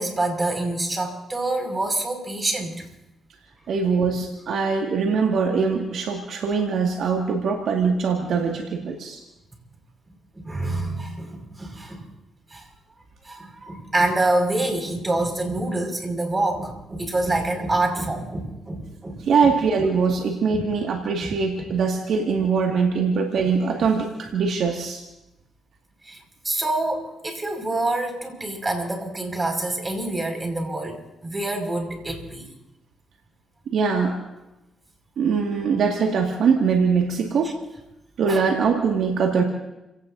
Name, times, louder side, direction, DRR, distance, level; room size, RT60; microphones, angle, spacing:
voice 1, 0.0-2.9 10.3-12.1 12.5-12.7 13.2-19.9 20.5-20.6 21.2-21.4 26.1-26.2 26.4-32.5 38.3-38.4, right 2 dB, 25° right, 3 dB, 5.6 m, -26 dB
voice 2, 3.7-9.2 19.2-25.0 33.7-34.2 35.2-37.6 38.2-39.4, right 5 dB, 70° right, 1 dB, 2.0 m, -22 dB
29.5 x 18.0 x 2.7 m, 0.94 s
supercardioid pair, 55°, 0 cm